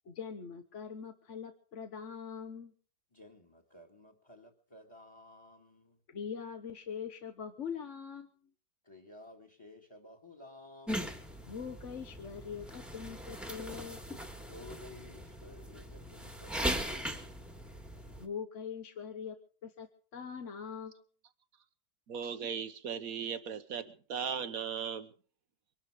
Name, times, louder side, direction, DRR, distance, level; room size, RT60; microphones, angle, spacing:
voice 1, 0.0-2.7 6.1-8.3 11.4-14.0 18.2-19.4 19.6-19.9 20.1-20.9, left 7 dB, 50° left, 6 dB, 1.4 m, -42 dB
voice 2, 3.1-6.0 8.8-11.1 14.3-16.7, left 2 dB, 15° left, 4 dB, 2.0 m, -54 dB
sound 1, 10.9-18.3, equal, ahead, 1.7 m, -40 dB
voice 3, 22.1-25.1, right 7 dB, 60° right, 12 dB, 1.5 m, -37 dB
23.5 x 12.0 x 4.9 m, 0.42 s
omnidirectional pair, 1.8 m